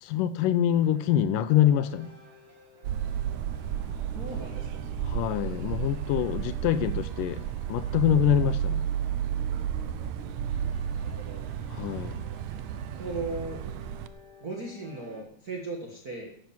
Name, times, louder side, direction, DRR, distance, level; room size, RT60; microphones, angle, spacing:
voice 1, 0.0-2.1 5.0-7.4 7.7-8.8 11.7-12.2, left 11 dB, 80° left, 13 dB, 2.1 m, -25 dB
sound 1, 0.7-15.2, left 1 dB, 20° right, 2.0 m, -52 dB
sound 2, 2.8-14.1, right 9 dB, 85° right, 1.6 m, -32 dB
voice 2, 4.1-4.8 7.3-7.5 8.4-8.5 10.9-11.4 13.0-13.6 14.4-16.3, right 3 dB, 40° right, -1 dB, 1.4 m, -37 dB
11.5 x 9.3 x 7.5 m, 0.68 s
omnidirectional pair, 4.0 m